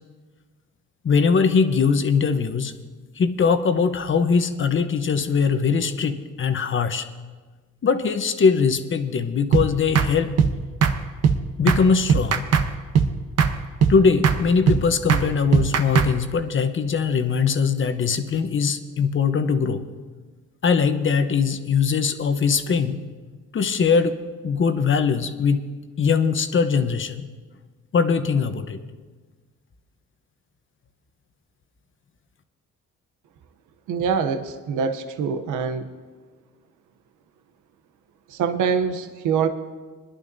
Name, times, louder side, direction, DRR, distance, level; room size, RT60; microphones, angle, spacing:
voice 1, 1.0-2.7 3.2-7.1 7.8-10.3 11.6-12.5 13.9-19.9 20.6-23.0 23.5-24.2 24.4-25.6 26.0-27.3 27.9-28.8, left 5 dB, 40° left, 8 dB, 0.9 m, -21 dB
sound 1, 9.5-9.7 10.0-10.1 10.4-10.5 10.8-11.0 11.2-11.4 11.7-11.8 12.1-12.7 12.9-13.1 13.4-13.5 13.8-14.0 14.2-14.4 14.7-14.8 15.1-15.3 15.5-16.1, right 6 dB, 55° right, 1.0 m, -18 dB
voice 2, 33.9-35.9 38.3-39.5, right 6 dB, 85° right, 9 dB, 0.8 m, -24 dB
23.0 x 11.0 x 2.7 m, 1.4 s
cardioid pair, 90°, 30 cm